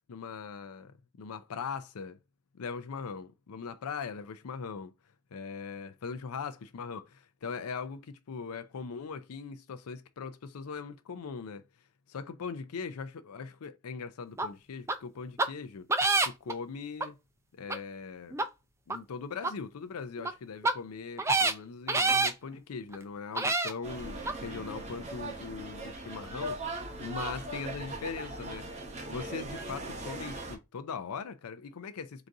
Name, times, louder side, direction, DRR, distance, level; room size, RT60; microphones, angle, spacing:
voice 1, 0.1-2.2 2.5-4.9 5.3-11.7 12.1-15.9 16.2-17.2 17.6-18.4 18.9-28.7 29.1-32.3, left 5 dB, 90° left, 0.5 m, -40 dB
sound 1, 14.4-14.5 14.9-15.0 15.4-15.5 15.9-16.5 17.0-17.1 17.7-17.8 18.3-18.5 18.9-19.0 19.4-19.5 20.2-20.3 20.6-20.7 21.2-21.5 21.9-22.3 22.9-23.0 23.4-23.7 24.3-24.4, right 3 dB, 10° right, 0.3 m, -26 dB
sound 2, 23.8-30.6, right 2 dB, 30° right, 0.7 m, -39 dB
3.9 x 2.6 x 4.7 m
head